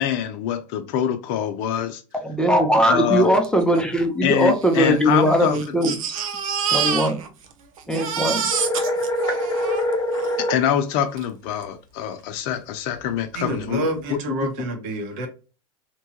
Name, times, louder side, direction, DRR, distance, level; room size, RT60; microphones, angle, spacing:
voice 1, 0.0-2.0 2.9-3.3 4.2-5.6 10.5-14.3, left 10 dB, 60° left, 0.6 m, -24 dB
voice 2, 2.2-6.0 6.7-7.2 7.9-8.5, equal, 5° left, 0.6 m, -20 dB
Crying sobbing, 3.4-3.5 3.7-3.8 4.6-7.5 7.8-10.3 11.2-11.3 11.6-11.7, right 7 dB, 80° right, 0.6 m, -27 dB
sound 1, 8.5-10.6, left 1 dB, 25° left, 0.9 m, -24 dB
voice 3, 13.3-15.3, right 1 dB, 55° right, 1.0 m, -28 dB
2.9 x 2.3 x 2.8 m
hypercardioid pair, 100°, 17 cm